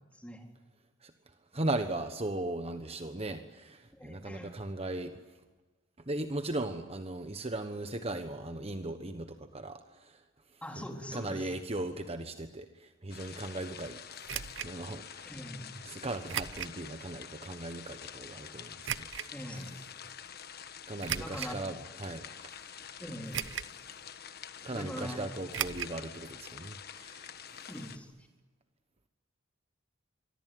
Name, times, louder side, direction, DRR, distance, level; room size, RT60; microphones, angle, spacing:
voice 1, 0.1-0.5 3.9-4.5 10.6-11.5 15.2-15.7 19.3-19.7 21.2-21.6 23.0-23.4 24.7-25.4 27.7-28.1, equal, 5° left, 2 dB, 3.9 m, -42 dB
voice 2, 1.5-5.2 6.1-10.2 10.8-10.9 11.1-15.3 15.8-18.9 19.2-19.3 20.9-23.0 24.6-27.7, right 2 dB, 30° right, 8 dB, 1.2 m, -38 dB
sound 1, 13.1-28.0, left 8 dB, 50° left, 1.3 m, -47 dB
sound 2, 14.3-14.7 16.3-16.8 17.3-17.4 18.8-19.3 21.0-21.6 22.2-22.3 23.3-23.8 24.1-24.2 25.5-26.0 26.2-26.3 26.6-26.7, right 9 dB, 65° right, 0.8 m, -36 dB
25.0 x 24.0 x 9.3 m, 1.2 s
head